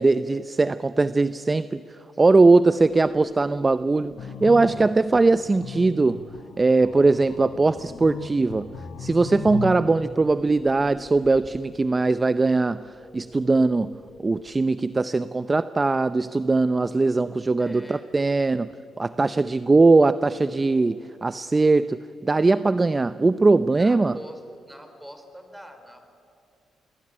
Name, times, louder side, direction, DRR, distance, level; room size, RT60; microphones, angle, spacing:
voice 1, 0.0-1.8 2.2-6.3 6.6-8.7 9.0-12.8 13.1-13.9 14.2-18.7 19.0-24.2, right 3 dB, 25° right, 14 dB, 0.6 m, -20 dB
sound 1, 2.8-14.6, left 1 dB, 15° left, 3.1 m, -49 dB
sound 2, 4.2-9.9, left 7 dB, 75° left, 4.3 m, -37 dB
voice 2, 17.6-18.1 23.8-26.1, equal, 5° right, 7 dB, 4.3 m, -44 dB
27.0 x 22.0 x 9.8 m, 2.6 s
cardioid pair, 90°, 0 cm